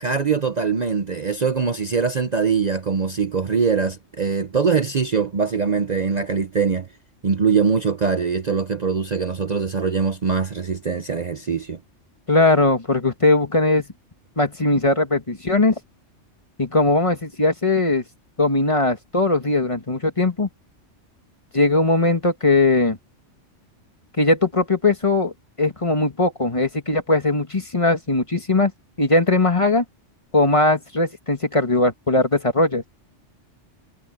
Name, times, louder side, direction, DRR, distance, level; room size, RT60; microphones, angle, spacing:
voice 1, 0.0-6.9 7.2-11.8, right 5 dB, 40° right, 0.8 m, -22 dB
voice 2, 12.3-13.9 14.4-15.7 16.6-18.0 18.4-20.5 21.5-23.0 24.2-25.3 25.6-28.7 29.0-29.8 30.3-32.8, left 2 dB, 25° left, 1.6 m, -19 dB
omnidirectional pair, 1.2 m